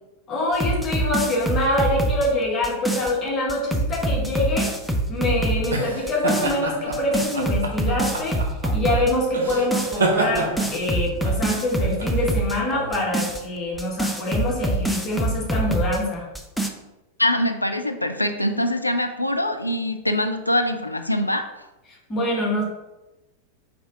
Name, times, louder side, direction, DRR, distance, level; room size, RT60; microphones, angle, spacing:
voice 1, 0.3-4.7 5.1-8.5 8.7-16.2 22.1-22.6, left 1 dB, 25° left, -3 dB, 1.4 m, -25 dB
sound 1, 0.5-3.1 3.5-5.7 6.1-6.6 6.9-9.1 9.5-10.0 10.4-12.6 12.9-16.0 16.4-16.7, right 1 dB, ahead, 0.4 m, -25 dB
sound 2, 4.8-13.8, right 2 dB, 65° right, 0.7 m, -29 dB
voice 2, 17.2-21.5, left 1 dB, 85° left, 6 dB, 0.3 m, -23 dB
4.5 x 2.6 x 3.6 m, 1.0 s
figure-of-eight pair, 90°, 0 cm